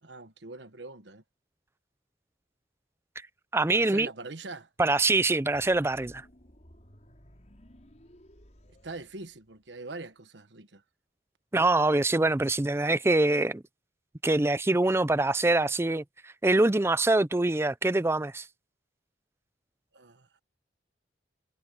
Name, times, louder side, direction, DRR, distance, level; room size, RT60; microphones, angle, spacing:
voice 1, 0.0-1.2 3.7-4.7 8.8-10.8 19.9-20.3, right 3 dB, 70° right, 1.3 m, -42 dB
voice 2, 3.5-4.1 4.8-6.2 11.5-13.6 14.2-18.5, right 2 dB, 15° right, 0.4 m, -24 dB
sound 1, 5.5-9.8, equal, 40° left, 5.9 m, -56 dB
head